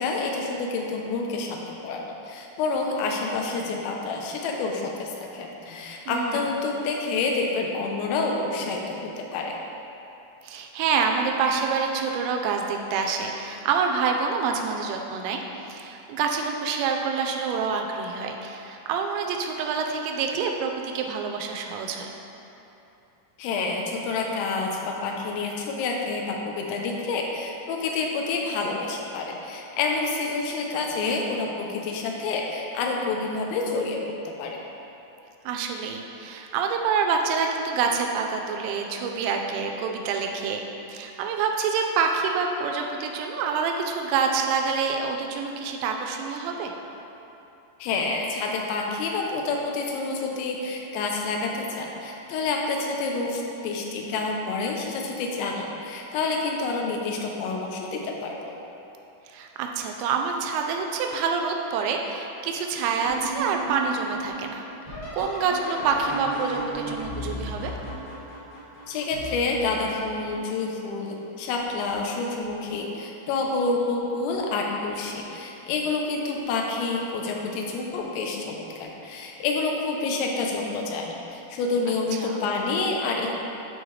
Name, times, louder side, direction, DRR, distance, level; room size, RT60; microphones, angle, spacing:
voice 1, 0.0-9.6 23.4-34.6 47.8-58.6 68.9-83.3, left 3 dB, 85° left, 0 dB, 3.0 m, -28 dB
voice 2, 6.1-6.5 10.4-22.1 35.5-46.7 59.3-64.6 65.1-67.7 82.1-82.3, right 5 dB, 85° right, 2 dB, 2.8 m, -27 dB
sound 1, 63.0-70.7 71.4-71.9 72.4-73.0 74.3-74.4 75.1-75.4 77.6-77.7 80.0-80.1, right 1 dB, 60° left, 2.9 m, -36 dB
10.0 x 4.5 x 3.2 m, 2.9 s
omnidirectional pair, 5.2 m